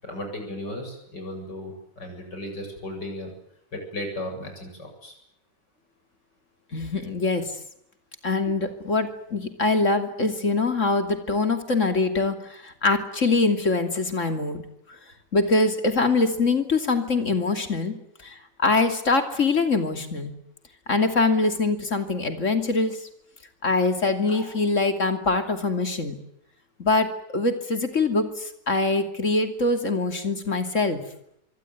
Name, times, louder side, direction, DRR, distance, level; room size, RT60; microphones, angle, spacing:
voice 1, 0.0-3.3 3.7-5.2 24.3-24.5, left 1 dB, 75° left, 4 dB, 8.7 m, -35 dB
voice 2, 6.7-7.5 8.2-14.6 15.3-17.9 18.2-20.3 20.9-23.0 23.6-26.1 26.8-27.1 27.3-31.0, left 3 dB, 45° left, 6 dB, 3.1 m, -23 dB
26.0 x 23.5 x 9.5 m, 0.77 s
omnidirectional pair, 1.9 m